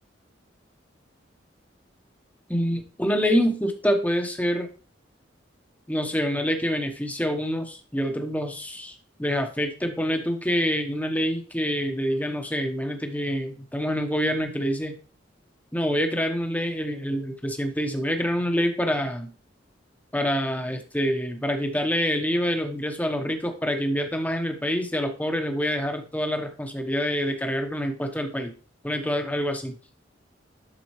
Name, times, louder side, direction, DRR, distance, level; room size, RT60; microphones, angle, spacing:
voice 1, 2.5-4.7 5.9-15.0 15.7-19.3 20.1-28.5 28.8-29.7, equal, 10° left, 5 dB, 1.0 m, -26 dB
11.5 x 4.2 x 3.2 m, 0.39 s
head